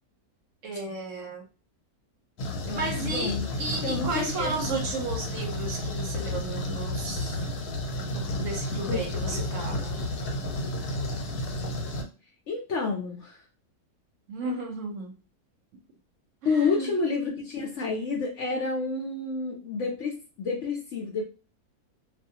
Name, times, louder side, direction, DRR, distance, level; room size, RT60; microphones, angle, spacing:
voice 1, 0.6-1.4 2.7-7.5 8.1-10.0 14.3-15.1 16.4-16.9, right 3 dB, 65° right, 2 dB, 0.9 m, -34 dB
sound 1, 2.4-12.0, left 1 dB, 85° left, 1.2 m, -32 dB
voice 2, 2.7-3.5 3.8-4.8 8.9-9.0 9.3-9.5 12.5-13.4 16.4-21.2, left 4 dB, 65° left, 0 dB, 0.8 m, -30 dB
2.4 x 2.3 x 2.7 m, 0.34 s
omnidirectional pair, 1.6 m